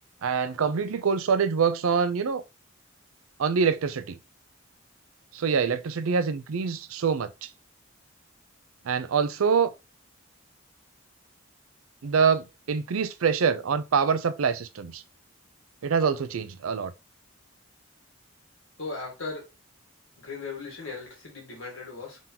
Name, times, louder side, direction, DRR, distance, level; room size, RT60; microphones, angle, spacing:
voice 1, 0.2-2.4 3.4-4.2 5.3-7.3 8.9-9.7 12.0-15.0 15.8-16.9, right 6 dB, 80° right, 0.5 m, -25 dB
voice 2, 18.8-19.5 20.2-22.2, left 3 dB, 70° left, 1.7 m, -37 dB
3.8 x 3.6 x 2.8 m
head